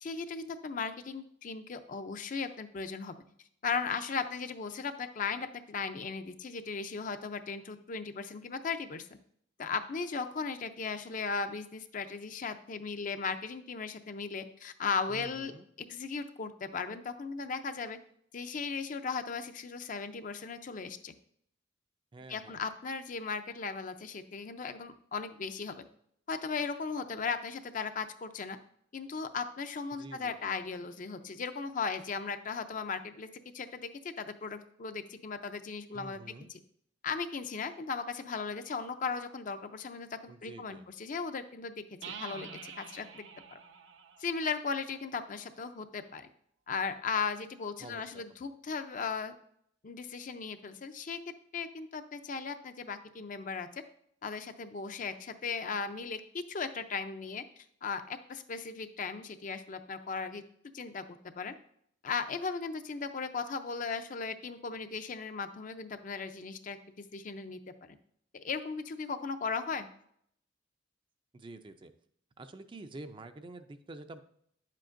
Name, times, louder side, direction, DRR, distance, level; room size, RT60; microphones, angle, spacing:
voice 1, 0.0-3.1 3.6-9.1 9.6-18.0 18.3-21.1 22.3-25.8 26.3-28.6 28.9-33.3 33.5-36.2 36.5-36.6 37.0-41.7 42.0-43.2 43.5-43.6 44.2-46.3 46.7-49.3 49.8-51.2 51.5-53.8 54.2-60.4 60.7-61.5 62.0-66.8 67.1-67.6 67.9-68.0 68.3-69.9, left 5 dB, 45° left, 9 dB, 0.5 m, -37 dB
voice 2, 15.1-15.7 22.1-22.6 30.0-30.5 35.9-36.5 40.3-40.8 47.8-48.2 71.3-71.9 72.4-74.2, right 2 dB, 25° right, 9 dB, 0.4 m, -48 dB
sound 1, 42.0-45.7, right 6 dB, 75° right, 0.7 m, -48 dB
9.4 x 7.5 x 2.5 m, 0.68 s
head